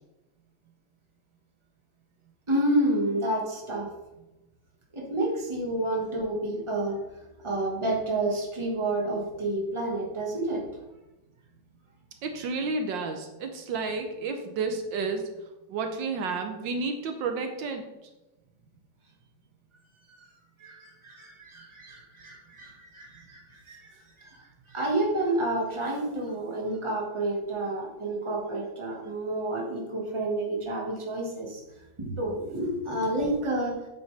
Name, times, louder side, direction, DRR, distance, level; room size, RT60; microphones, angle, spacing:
voice 1, 2.5-3.9 4.9-7.0 7.4-10.7 20.2-20.3 20.6-31.6 32.0-33.8, right 1 dB, 15° right, -2 dB, 1.5 m, -29 dB
voice 2, 12.2-15.3 15.7-17.8, right 4 dB, 75° right, 5 dB, 1.5 m, -31 dB
8.4 x 7.7 x 3.3 m, 1.0 s
omnidirectional pair, 2.1 m